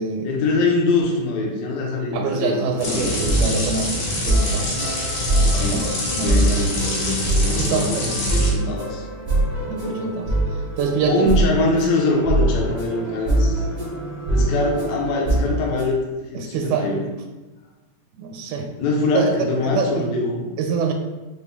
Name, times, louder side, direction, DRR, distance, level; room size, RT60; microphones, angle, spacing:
voice 1, 0.2-3.1 5.4-9.0 11.1-13.7 14.3-17.0 18.8-20.5, left 2 dB, 70° left, -1 dB, 1.9 m, -23 dB
voice 2, 2.1-4.7 6.2-6.6 7.6-8.1 9.7-10.3 10.8-11.3 16.3-17.0 18.2-18.7 19.1-19.3 19.6-20.1 20.6-20.9, right 4 dB, 85° right, 4 dB, 2.0 m, -25 dB
sound 1, 2.6-15.9, right 1 dB, 45° right, 0.6 m, -23 dB
sound 2, 2.8-8.5, left 2 dB, 90° left, 2.7 m, -26 dB
5.4 x 2.2 x 3.4 m, 1.1 s
omnidirectional pair, 3.5 m